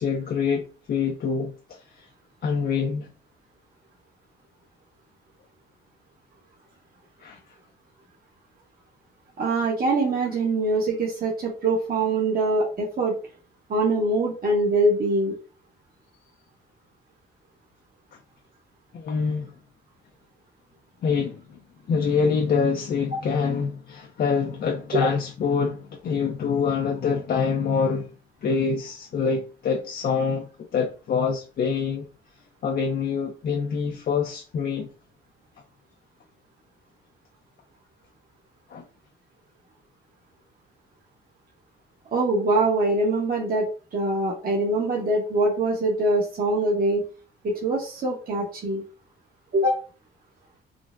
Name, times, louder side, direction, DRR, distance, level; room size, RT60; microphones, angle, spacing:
voice 1, 0.0-2.1 2.4-3.1 7.2-7.4 18.9-19.5 21.0-21.6 21.9-28.1 28.4-32.1 32.6-34.9 38.7-38.8, left 5 dB, 50° left, 0.5 m, -25 dB
voice 2, 9.4-13.1 13.7-15.3 23.1-23.2 24.9-25.1 42.1-47.1 47.4-48.9 49.5-49.8, right 2 dB, 50° right, 1.0 m, -23 dB
3.7 x 2.0 x 2.5 m
cardioid pair, 90°, 20 cm